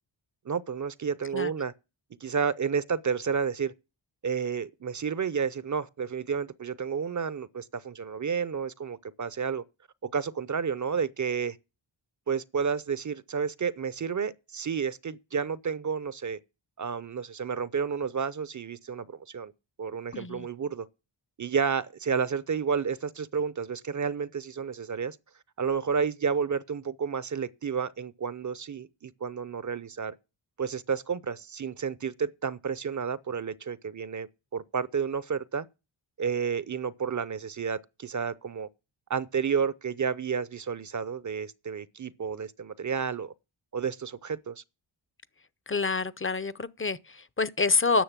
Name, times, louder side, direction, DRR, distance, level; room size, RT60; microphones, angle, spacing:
voice 1, 0.5-1.7 2.2-3.7 4.2-9.6 10.0-11.6 12.3-16.4 16.8-19.5 19.8-20.9 21.4-25.2 25.6-30.1 30.6-35.7 36.2-38.7 39.1-43.3 43.7-44.6, right 6 dB, 40° right, 0.6 m, -31 dB
voice 2, 20.1-20.5 45.7-48.0, left 4 dB, 25° left, 0.6 m, -27 dB
10.0 x 6.5 x 7.3 m
cardioid pair, 55°, 48 cm